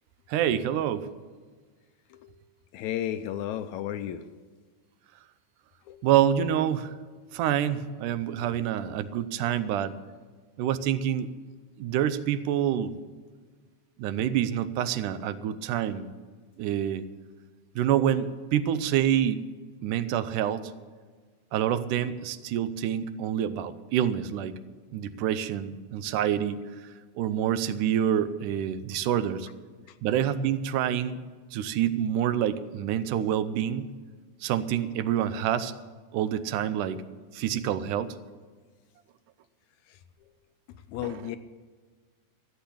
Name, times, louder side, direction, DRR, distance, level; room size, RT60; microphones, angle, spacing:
voice 1, 0.3-1.1 6.0-6.9 7.3-9.9 10.6-11.3 11.8-12.9 14.0-16.1 16.6-17.0 17.8-19.4 19.8-20.7 21.5-24.6 24.9-26.6 27.2-29.5 30.0-31.2 31.5-33.9 34.4-35.7 36.1-37.0 37.3-38.2 41.0-41.3, right 10 dB, 90° right, 13 dB, 2.2 m, -27 dB
voice 2, 2.7-4.2 5.9-6.0 40.9-41.4, left 11 dB, 80° left, 11 dB, 1.8 m, -33 dB
14.0 x 8.0 x 8.5 m, 1.5 s
omnidirectional pair, 3.6 m